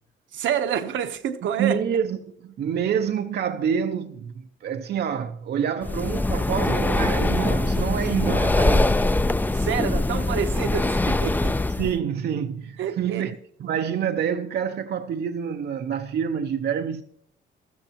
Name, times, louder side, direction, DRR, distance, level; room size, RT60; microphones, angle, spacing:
voice 1, 0.3-1.8 5.7-5.8 9.5-11.5 12.8-13.3, right 8 dB, 75° right, 1.0 m, -28 dB
voice 2, 1.6-4.3 4.6-9.0 11.8-13.3 13.6-17.0, right 8 dB, 55° right, 0.6 m, -27 dB
Breathing, 5.8-11.9, left 2 dB, 10° left, 0.4 m, -23 dB
14.0 x 13.5 x 3.0 m
cardioid pair, 90°, 20 cm